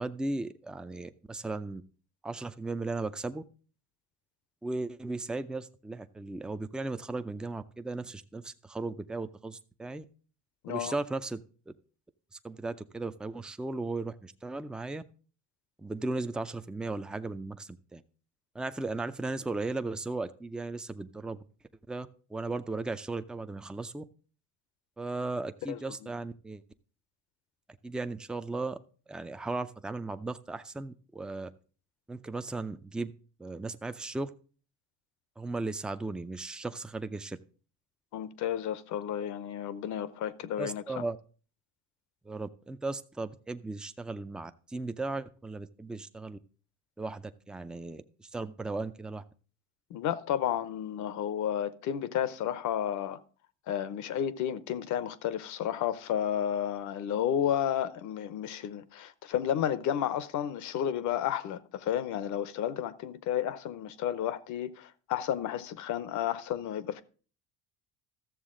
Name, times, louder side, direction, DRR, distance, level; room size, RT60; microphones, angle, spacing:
voice 1, 0.0-1.8 2.2-3.4 4.6-10.1 10.7-11.4 12.3-15.0 15.8-18.0 18.5-21.4 21.9-24.0 25.0-26.6 27.8-28.8 29.1-31.5 32.1-33.1 33.4-34.3 35.4-37.4 40.6-41.2 42.3-46.4 47.0-49.2, right 3 dB, ahead, 0.4 m, -36 dB
voice 2, 38.1-41.0 49.9-53.2 53.7-67.0, left 10 dB, 55° left, 0.8 m, -32 dB
13.5 x 7.0 x 3.7 m
supercardioid pair, 100°, 35 cm